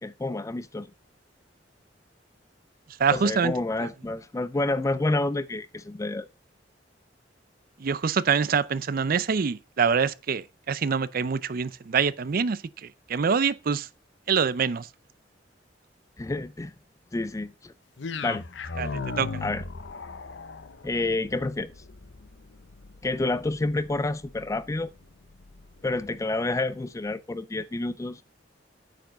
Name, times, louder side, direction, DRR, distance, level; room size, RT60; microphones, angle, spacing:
voice 1, 0.0-0.9 3.1-6.3 16.2-16.7 17.1-17.7 18.2-18.4 19.4-19.6 20.8-21.7 23.0-24.9 25.8-28.2, left 2 dB, 20° left, 0.4 m, -29 dB
voice 2, 3.0-3.5 3.8-3.9 7.8-13.9 14.3-14.9 18.8-19.4, right 6 dB, 55° right, 0.5 m, -25 dB
sound 1, 18.0-26.2, left 4 dB, 85° left, 0.8 m, -39 dB
9.2 x 4.7 x 6.0 m
head